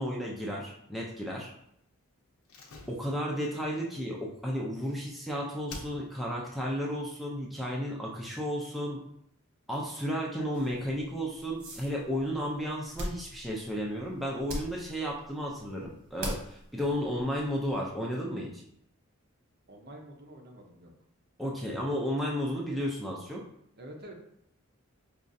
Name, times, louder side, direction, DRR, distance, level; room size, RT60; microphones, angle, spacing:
voice 1, 0.0-1.5 2.9-9.0 9.7-18.6 21.4-23.4, equal, ahead, -3 dB, 0.4 m, -33 dB
Slam, 2.4-5.2 5.7-6.4 6.7-6.8, left 3 dB, 80° left, 0.6 m, -48 dB
sound 1, 10.5-17.9, right 1 dB, 90° right, 0.9 m, -43 dB
voice 2, 19.7-20.9 23.8-24.1, right 1 dB, 50° right, 1 dB, 0.7 m, -47 dB
5.0 x 2.4 x 2.6 m, 0.74 s
head